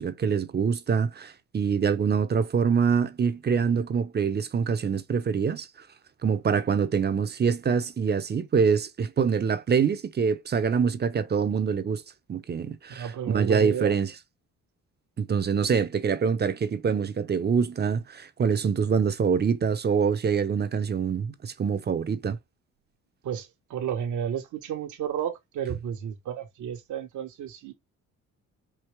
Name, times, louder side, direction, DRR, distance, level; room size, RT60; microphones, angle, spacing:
voice 1, 0.0-5.7 6.2-12.0 12.3-14.1 15.2-22.4, right 6 dB, 35° right, 0.7 m, -25 dB
voice 2, 12.9-13.9 23.2-27.7, right 8 dB, 75° right, 1.2 m, -32 dB
4.8 x 2.8 x 3.2 m
cardioid pair, 90°, 30 cm